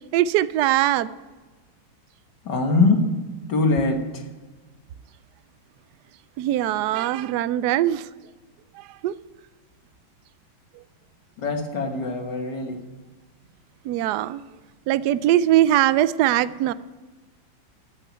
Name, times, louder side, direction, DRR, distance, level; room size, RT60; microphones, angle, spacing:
voice 1, 0.1-1.1 6.4-8.1 8.8-9.1 13.8-14.4 14.9-16.7, right 13 dB, 75° right, 16 dB, 1.0 m, -21 dB
voice 2, 2.5-3.0 3.5-4.0 11.4-12.8, left 3 dB, 60° left, 3 dB, 2.0 m, -22 dB
14.0 x 6.1 x 9.2 m, 1.3 s
omnidirectional pair, 2.1 m